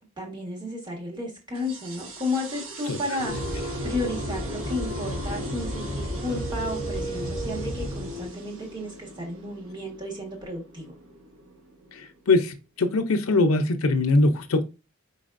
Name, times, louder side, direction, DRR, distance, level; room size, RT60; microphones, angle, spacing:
voice 1, 0.2-3.3 3.8-10.9, left 2 dB, 20° right, 0 dB, 1.4 m, -33 dB
sound 1, 1.5-12.6, right 2 dB, 75° right, 1.2 m, -41 dB
voice 2, 2.9-3.4 11.9-14.6, left 2 dB, 85° left, 8 dB, 0.6 m, -23 dB
sound 2, 3.3-8.3, equal, 50° right, 2.3 m, -32 dB
4.7 x 4.0 x 2.5 m, 0.29 s
head